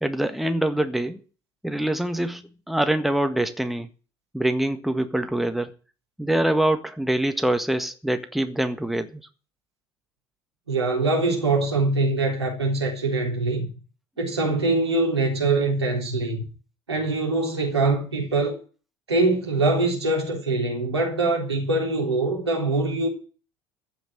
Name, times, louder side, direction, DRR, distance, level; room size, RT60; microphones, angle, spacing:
voice 1, 0.0-1.2 1.6-3.9 4.3-5.7 6.2-9.2, right 1 dB, ahead, 1.6 m, -24 dB
voice 2, 10.7-13.7 14.2-16.5 16.9-18.6 19.1-23.1, right 2 dB, 85° right, 3.8 m, -23 dB
15.0 x 6.1 x 9.1 m
figure-of-eight pair, 65°, 13 cm